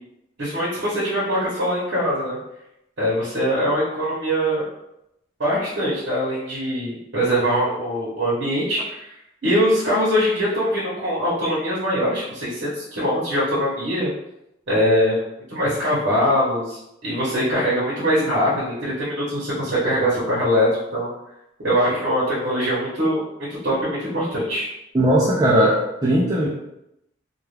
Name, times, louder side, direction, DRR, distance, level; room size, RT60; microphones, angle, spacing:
voice 1, 0.4-2.4 3.0-4.6 5.4-9.1 9.4-14.1 14.7-15.2 15.5-21.1 21.6-23.2 23.6-24.7, equal, 65° right, -9 dB, 0.8 m, -22 dB
voice 2, 24.9-26.5, right 1 dB, 20° right, -8 dB, 0.3 m, -18 dB
2.3 x 2.2 x 3.2 m, 0.85 s
head